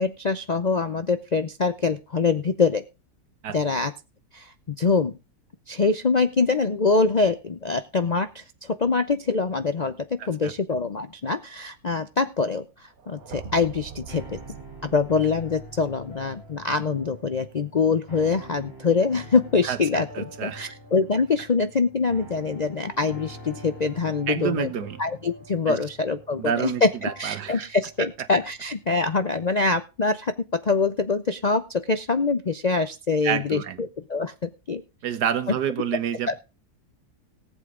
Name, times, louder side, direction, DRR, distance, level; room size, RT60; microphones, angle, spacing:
voice 1, 0.0-2.8 3.5-3.9 4.3-5.2 5.7-9.9 10.3-14.4 14.9-24.7 25.0-34.8 36.3-36.4, left 4 dB, 50° left, 10 dB, 0.4 m, -24 dB
voice 2, 10.2-10.5 19.6-20.7 24.3-25.0 25.7-25.8 26.4-27.7 33.2-33.8 35.0-36.4, right 9 dB, 80° right, 12 dB, 1.6 m, -29 dB
sound 1, 13.0-16.9, right 7 dB, 60° right, 1.5 m, -44 dB
sound 2, 13.2-29.4, equal, 35° left, 7.6 m, -46 dB
18.5 x 8.2 x 3.7 m, 0.29 s
omnidirectional pair, 1.7 m